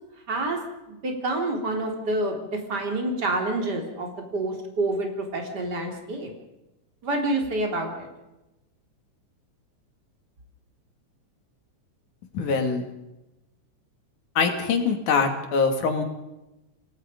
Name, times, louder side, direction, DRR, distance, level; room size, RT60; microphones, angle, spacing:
voice 1, 0.3-0.6 0.9-6.3 7.0-8.1, right 2 dB, 30° right, 2 dB, 4.1 m, -28 dB
voice 2, 12.3-12.9 14.4-16.0, left 5 dB, 80° left, 5 dB, 3.9 m, -23 dB
28.0 x 18.5 x 5.2 m, 0.96 s
omnidirectional pair, 3.5 m